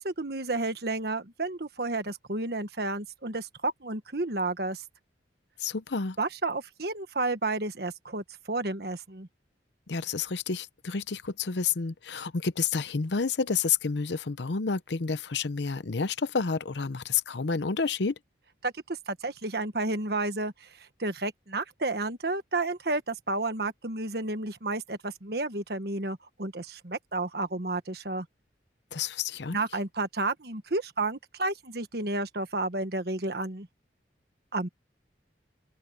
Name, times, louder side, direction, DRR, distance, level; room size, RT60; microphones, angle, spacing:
voice 1, 0.0-4.8 6.2-9.3 18.6-28.3 29.5-33.7 34.5-34.7, right 2 dB, 60° right, 1.4 m, -31 dB
voice 2, 5.6-6.2 9.9-18.1 28.9-29.6, left 5 dB, 75° left, 0.7 m, -29 dB
open air
head